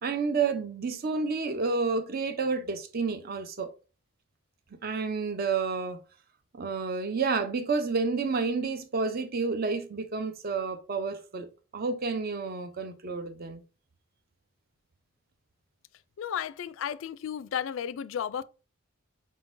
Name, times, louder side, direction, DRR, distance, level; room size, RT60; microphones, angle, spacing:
voice 1, 0.0-3.7 4.8-6.0 6.5-11.5 11.7-13.6, right 4 dB, 45° right, 0.5 m, -30 dB
voice 2, 16.2-18.4, left 8 dB, 65° left, 0.3 m, -33 dB
5.0 x 3.7 x 2.5 m
head